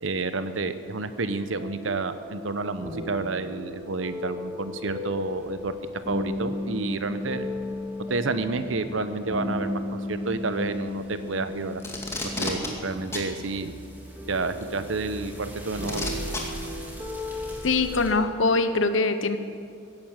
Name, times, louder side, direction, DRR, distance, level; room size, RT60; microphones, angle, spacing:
voice 1, 0.0-5.8 6.1-7.5 8.1-11.8 12.2-13.7 14.3-16.1, right 3 dB, 80° right, 11 dB, 0.9 m, -30 dB
sound 1, 0.8-18.1, left 1 dB, 10° right, 2.8 m, -35 dB
Packing tape duct tape, 11.8-12.7 13.1-13.3 14.6-14.7 15.8-16.4 17.5-17.6, left 2 dB, 15° left, 2.2 m, -31 dB
voice 2, 17.6-19.4, left 3 dB, 80° left, 10 dB, 1.1 m, -23 dB
16.5 x 11.5 x 7.6 m, 2.4 s
head